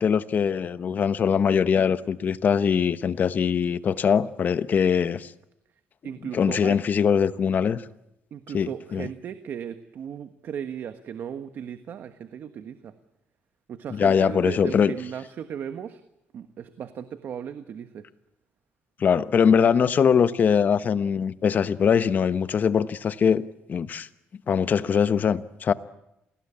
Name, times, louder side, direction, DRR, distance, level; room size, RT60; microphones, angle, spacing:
voice 1, 0.0-5.3 6.3-7.8 8.5-9.1 13.9-14.9 19.0-23.4 23.7-24.1 24.5-25.7, left 7 dB, 45° left, 1.1 m, -22 dB
voice 2, 6.0-6.8 8.3-12.9 13.7-16.0 16.3-18.0, right 8 dB, 55° right, 1.3 m, -36 dB
28.0 x 19.5 x 8.7 m
cardioid pair, 125°, 4 cm